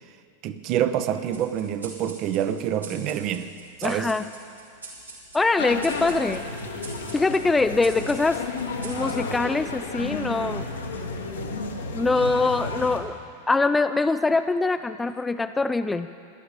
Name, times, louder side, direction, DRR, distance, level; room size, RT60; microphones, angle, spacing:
voice 1, 0.4-3.5 3.8-4.1, right 10 dB, 40° right, 10 dB, 0.7 m, -26 dB
sound 1, 1.3-10.2, right 3 dB, 80° right, 2.9 m, -45 dB
voice 2, 3.8-4.3 5.3-6.5 7.1-8.4 8.8-10.7 11.9-13.2 13.5-16.1, left 3 dB, 10° left, 11 dB, 0.3 m, -23 dB
sound 2, 5.6-13.0, left 3 dB, 70° left, 1.4 m, -32 dB
17.5 x 11.5 x 4.8 m, 2.3 s
figure-of-eight pair, 90°, 0 cm